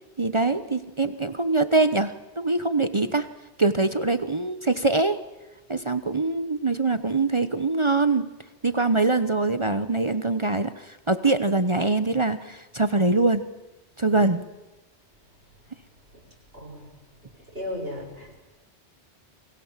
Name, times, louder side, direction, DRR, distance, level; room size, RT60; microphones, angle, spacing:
voice 1, 0.2-3.3 3.6-5.2 5.7-8.3 8.6-13.5 14.0-14.4, right 3 dB, 30° right, 11 dB, 0.9 m, -23 dB
voice 2, 16.5-16.9 17.5-18.4, left 1 dB, 60° right, -2 dB, 7.1 m, -35 dB
30.0 x 23.0 x 7.4 m, 1.1 s
omnidirectional pair, 1.1 m